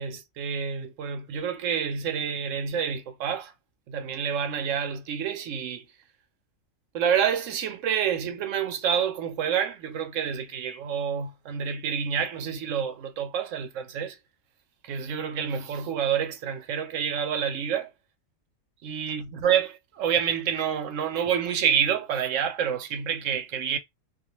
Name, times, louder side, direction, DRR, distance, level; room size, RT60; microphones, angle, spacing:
voice 1, 0.0-3.5 3.9-5.8 6.9-14.2 14.8-17.9 18.8-23.8, right 8 dB, 75° right, 0.9 m, -28 dB
2.3 x 2.3 x 2.8 m
omnidirectional pair, 1.4 m